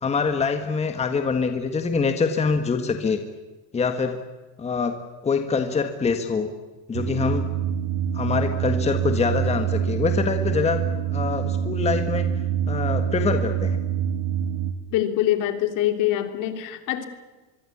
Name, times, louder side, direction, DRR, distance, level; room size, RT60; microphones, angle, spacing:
voice 1, 0.0-3.2 3.7-4.2 4.6-5.0 5.2-6.5 6.9-7.5 8.1-12.3 12.7-13.8, left 5 dB, 15° left, 7 dB, 1.6 m, -24 dB
sound 1, 6.9-14.7, right 9 dB, 55° right, 2.3 m, -25 dB
voice 2, 14.9-17.1, left 12 dB, 55° left, 8 dB, 3.2 m, -24 dB
24.5 x 24.0 x 8.6 m, 1.2 s
cardioid pair, 155°, 38 cm